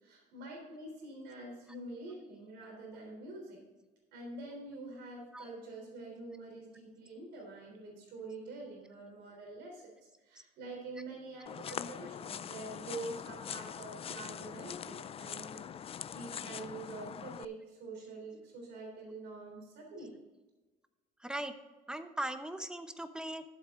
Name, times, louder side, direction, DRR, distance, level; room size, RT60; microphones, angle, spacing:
voice 1, 0.0-3.6 4.1-20.1, right 2 dB, 85° right, 0 dB, 3.5 m, -46 dB
sound 1, 11.5-17.5, left 8 dB, 35° left, 0.4 m, -43 dB
voice 2, 21.2-21.5 21.9-23.4, right 1 dB, 5° right, 9 dB, 0.8 m, -39 dB
12.0 x 7.8 x 3.7 m, 1.2 s
cardioid pair, 110°, 17 cm